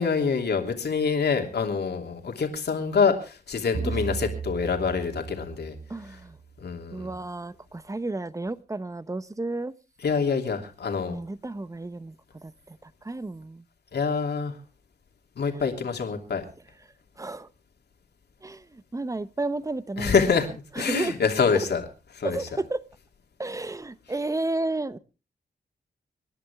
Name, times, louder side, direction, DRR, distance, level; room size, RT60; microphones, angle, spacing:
voice 1, 0.0-5.7 6.6-7.1 10.0-11.2 13.9-14.6 15.4-16.4 20.0-21.8 22.1-22.5, left 5 dB, 75° left, 2.9 m, -26 dB
sound 1, 3.7-6.5, right 5 dB, 55° right, 2.0 m, -35 dB
voice 2, 5.9-6.4 6.9-9.7 11.1-12.1 12.4-13.6 17.2-17.5 18.4-20.2 20.8-21.2 22.2-22.8 23.4-25.0, right 2 dB, 20° right, 0.9 m, -32 dB
26.0 x 11.0 x 3.5 m
wide cardioid pair, 100°, 17 cm